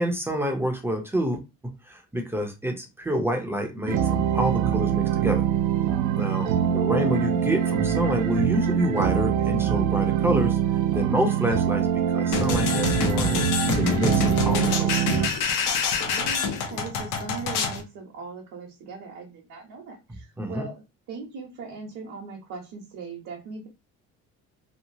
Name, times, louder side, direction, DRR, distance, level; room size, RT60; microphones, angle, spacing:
voice 1, 0.0-1.4 1.6-5.4 6.1-10.6 10.9-11.9 12.1-15.0 20.4-20.6, equal, 10° right, 3 dB, 0.5 m, -28 dB
sound 1, 3.9-15.3, right 9 dB, 80° right, 0.5 m, -24 dB
voice 2, 6.4-7.0 16.0-23.7, right 4 dB, 60° right, -1 dB, 0.9 m, -39 dB
sound 2, 12.3-17.8, left 5 dB, 85° left, 0.7 m, -26 dB
2.9 x 2.2 x 2.6 m, 0.25 s
cardioid pair, 140°, 30 cm